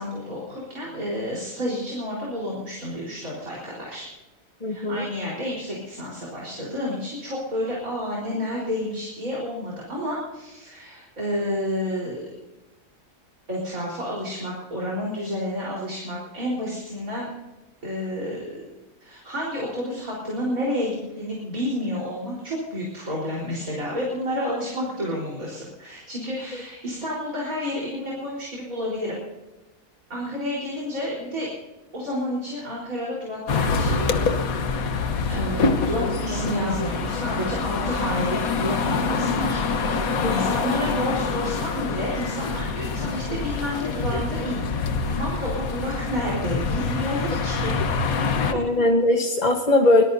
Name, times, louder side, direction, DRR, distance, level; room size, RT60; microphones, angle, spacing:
voice 1, 0.0-4.1 4.6-12.3 13.5-17.3 17.8-18.7 19.0-29.2 30.1-31.5 31.9-34.4 35.3-44.6 45.0-47.7, left 1 dB, 80° right, -4 dB, 4.8 m, -30 dB
voice 2, 4.6-5.0 40.2-40.5 48.5-50.0, left 2 dB, 30° left, 2 dB, 1.3 m, -20 dB
sound 1, 33.5-48.5, left 4 dB, 90° left, 1.6 m, -25 dB
24.5 x 18.5 x 2.7 m, 1.0 s
omnidirectional pair, 1.4 m